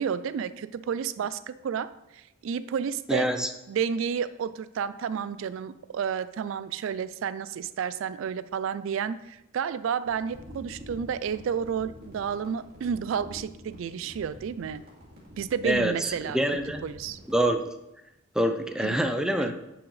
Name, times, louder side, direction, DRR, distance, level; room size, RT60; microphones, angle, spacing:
voice 1, 0.0-3.3 3.7-14.8 15.4-16.4 16.8-17.2 18.8-19.0 19.5-19.6, right 7 dB, 65° right, 15 dB, 0.3 m, -31 dB
voice 2, 3.1-3.5 15.6-16.8 17.3-17.6 18.3-19.5, equal, 5° right, 6 dB, 0.5 m, -25 dB
sound 1, 10.0-17.5, left 1 dB, 50° right, 2.5 m, -48 dB
9.7 x 6.1 x 3.2 m, 0.90 s
head